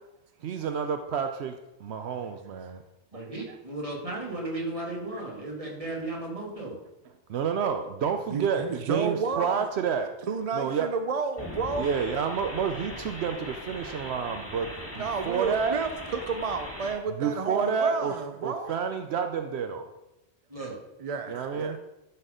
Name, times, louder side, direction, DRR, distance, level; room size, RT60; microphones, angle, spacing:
voice 1, 0.4-2.8 7.3-10.1 10.5-10.9 11.8-15.8 17.1-19.9 21.3-21.8, right 6 dB, 75° right, 7 dB, 0.9 m, -29 dB
voice 2, 3.1-6.8 20.5-20.8, right 2 dB, 30° right, -2 dB, 2.1 m, -35 dB
voice 3, 8.3-9.6 10.3-11.9 14.9-18.7 21.0-21.8, right 5 dB, 45° right, 8 dB, 0.5 m, -31 dB
sound 1, 11.4-17.0, left 1 dB, 10° left, 2.3 m, -40 dB
11.5 x 4.4 x 5.0 m, 0.94 s
omnidirectional pair, 1.1 m